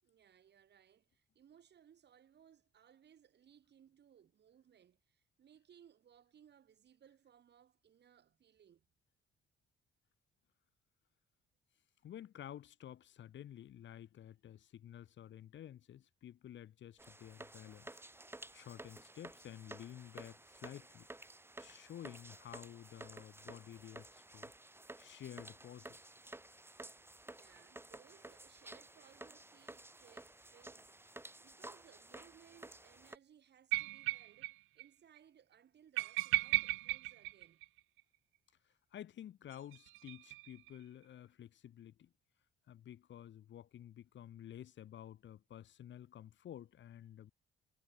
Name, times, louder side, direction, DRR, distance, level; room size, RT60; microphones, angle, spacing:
voice 1, 0.0-8.8 26.8-37.6, right 9 dB, 60° right, 4.7 m, -65 dB
voice 2, 12.0-17.9 18.5-21.1 21.6-24.5 25.0-26.1 38.6-42.1 42.7-47.3, left 11 dB, 70° left, 3.2 m, -52 dB
sound 1, 17.0-33.2, right 2 dB, 10° right, 2.9 m, -53 dB
sound 2, 33.7-34.5 34.8-34.9 35.2-35.3 36.0-38.0 39.5-40.8, right 19 dB, 90° right, 0.4 m, -36 dB
cardioid pair, 90°, 20 cm